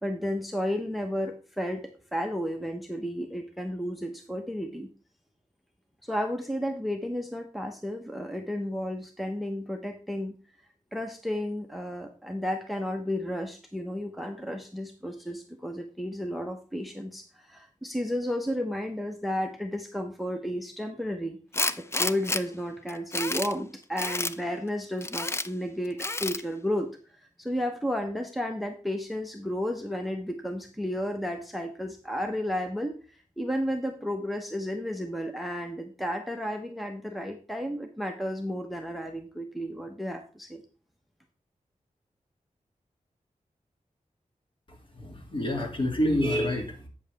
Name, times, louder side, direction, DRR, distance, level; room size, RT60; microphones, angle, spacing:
voice 1, 0.0-4.9 6.0-10.3 10.9-21.4 21.9-26.9 27.4-33.0 33.4-40.6, equal, ahead, 4 dB, 0.8 m, -32 dB
Tools, 21.5-22.4 22.9-23.5 24.0-24.3 25.0-25.5 26.0-26.4, left 2 dB, 20° left, 0.4 m, -29 dB
voice 2, 45.0-46.9, equal, 40° left, 2 dB, 2.3 m, -27 dB
8.6 x 7.0 x 3.4 m, 0.38 s
wide cardioid pair, 125°, 13 cm